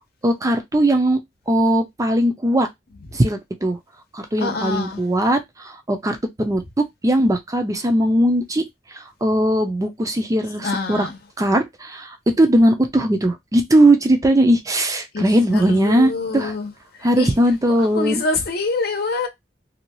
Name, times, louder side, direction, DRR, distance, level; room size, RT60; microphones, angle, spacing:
voice 1, 0.2-1.2 1.5-2.7 3.1-3.8 4.1-6.6 7.0-8.6 8.9-11.1 11.4-16.5 17.0-18.2, right 1 dB, 20° right, 0.5 m, -19 dB
voice 2, 4.4-5.0 10.6-11.2 15.1-16.7 17.0-17.3 17.8-19.3, left 3 dB, 60° left, 0.7 m, -26 dB
2.7 x 2.3 x 2.9 m
head